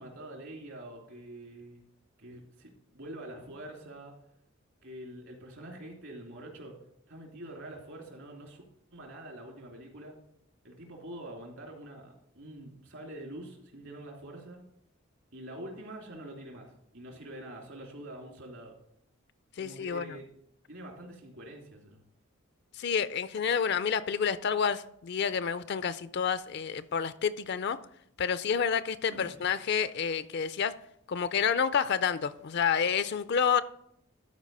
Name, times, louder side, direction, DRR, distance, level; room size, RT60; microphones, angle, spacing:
voice 1, 0.0-1.8 2.2-4.2 4.8-6.7 7.1-8.6 8.9-10.2 10.6-14.6 15.3-18.8 19.6-20.2 20.7-22.0 29.1-29.4, right 1 dB, 70° right, 2.9 m, -45 dB
voice 2, 19.6-20.2 22.7-27.8 28.2-30.7 31.1-33.6, left 7 dB, 55° left, 0.4 m, -29 dB
12.5 x 4.8 x 5.3 m
head